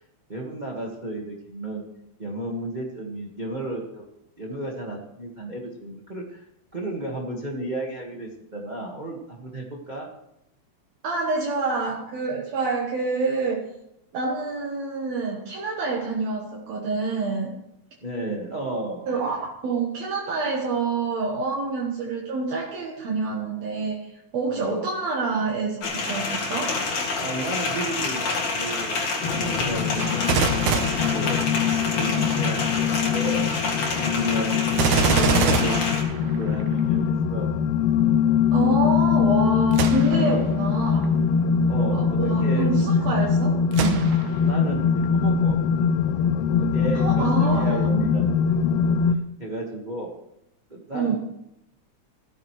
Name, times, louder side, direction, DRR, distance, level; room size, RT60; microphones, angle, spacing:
voice 1, 0.3-1.8 2.2-4.0 4.4-6.4 6.7-10.1 18.0-19.0 24.5-24.8 27.2-28.3 28.5-31.4 31.8-33.5 33.9-35.9 36.2-37.6 40.1-40.5 41.7-42.7 44.4-45.6 46.4-49.1 49.4-50.1 50.7-51.2, right 1 dB, 25° right, -1 dB, 1.1 m, -33 dB
voice 2, 11.0-13.7 14.1-17.5 19.1-26.9 33.8-33.9 35.0-35.1 38.5-41.2 41.9-44.2 46.9-47.9 50.9-51.2, right 4 dB, 65° right, -2 dB, 2.5 m, -27 dB
sound 1, 25.8-36.0, left 3 dB, 70° left, 3.5 m, -28 dB
sound 2, 29.2-49.2, left 7 dB, 85° left, 1.3 m, -22 dB
Gunshot gunfire, 30.0-32.0 34.7-36.8 39.7-40.4 41.0-41.1 43.7-44.5 45.0-45.1, right 6 dB, 80° right, 2.5 m, -25 dB
16.0 x 14.0 x 3.2 m, 0.83 s
omnidirectional pair, 3.3 m